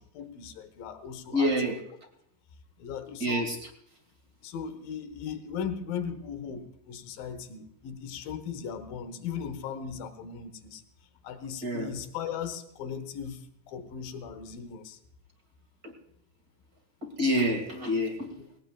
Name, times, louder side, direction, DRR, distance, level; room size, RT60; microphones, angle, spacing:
voice 1, 0.0-1.8 2.8-3.5 4.4-10.8 11.2-15.0 18.3-18.5, left 7 dB, 70° left, 9 dB, 2.5 m, -38 dB
voice 2, 1.3-1.8 3.2-3.7 11.6-11.9 15.8-15.9 17.0-18.3, equal, 30° right, 4 dB, 1.9 m, -27 dB
20.0 x 18.5 x 2.4 m, 0.74 s
omnidirectional pair, 4.9 m